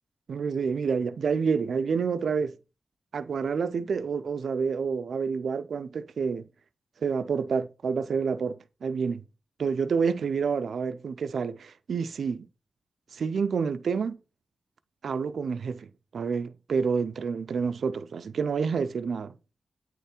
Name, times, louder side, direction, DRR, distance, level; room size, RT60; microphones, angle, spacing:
voice 1, 0.3-2.5 3.1-6.5 7.0-9.2 9.6-12.5 13.1-14.2 15.0-19.3, right 5 dB, 80° right, 0.5 m, -28 dB
9.0 x 3.3 x 4.3 m
cardioid pair, 75°, 0 cm